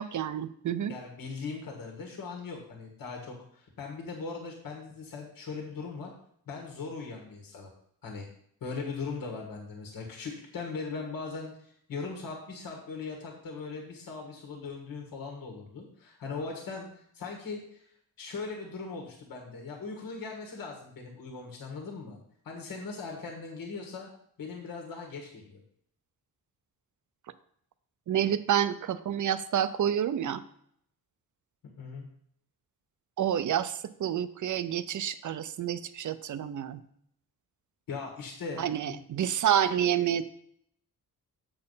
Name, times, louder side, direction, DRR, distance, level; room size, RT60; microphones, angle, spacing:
voice 1, 0.0-0.9 28.1-30.4 33.2-36.8 38.6-40.2, right 9 dB, 55° right, 14 dB, 0.6 m, -28 dB
voice 2, 0.9-6.1 6.5-7.7 8.0-8.3 8.6-17.9 18.2-22.2 22.4-24.1 24.4-25.6 31.8-32.1 37.9-39.0, left 4 dB, 70° left, 0 dB, 1.7 m, -39 dB
7.7 x 4.4 x 5.6 m, 0.68 s
cardioid pair, 90°, 36 cm